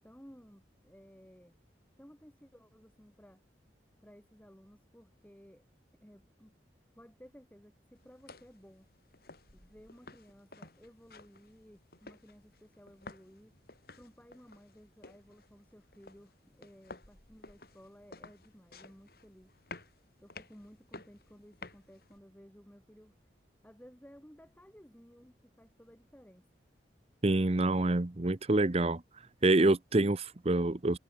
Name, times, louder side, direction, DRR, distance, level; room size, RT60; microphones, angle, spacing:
voice 1, 0.0-1.6 2.0-3.4 4.0-5.7 6.0-6.5 6.9-8.9 9.5-13.6 14.0-19.7 20.2-23.1 23.6-26.6, equal, 10° left, 5.2 m, -57 dB
sound 1, 8.0-22.2, left 3 dB, 60° left, 6.6 m, -54 dB
voice 2, 27.2-29.0 29.4-31.0, right 2 dB, 35° right, 0.8 m, -26 dB
head